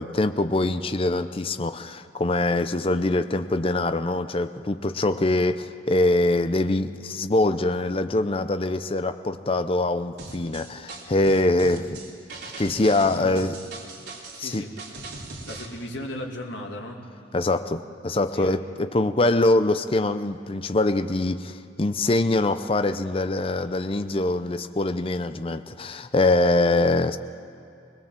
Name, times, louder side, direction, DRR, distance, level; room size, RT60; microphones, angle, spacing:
voice 1, 0.0-12.0 12.6-13.6 14.4-14.6 17.3-27.2, left 2 dB, 30° left, 10 dB, 0.6 m, -23 dB
sound 1, 10.2-15.7, right 3 dB, 65° right, 3.3 m, -40 dB
voice 2, 13.1-13.4 14.3-15.0 15.5-17.0 18.3-18.5, left 1 dB, 80° left, 1 dB, 2.6 m, -36 dB
21.0 x 21.0 x 7.4 m, 2.7 s
head